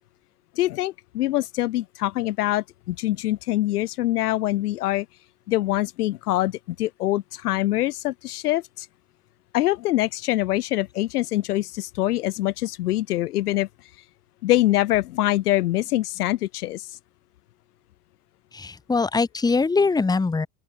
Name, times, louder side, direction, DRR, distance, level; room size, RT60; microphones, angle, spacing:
voice 1, 0.6-5.1 5.5-8.9 9.5-13.7 14.4-16.9, left 15 dB, 75° left, 0.9 m, -24 dB
voice 2, 18.5-20.5, left 4 dB, 10° left, 1.0 m, -22 dB
open air
hypercardioid pair, 85°, 46 cm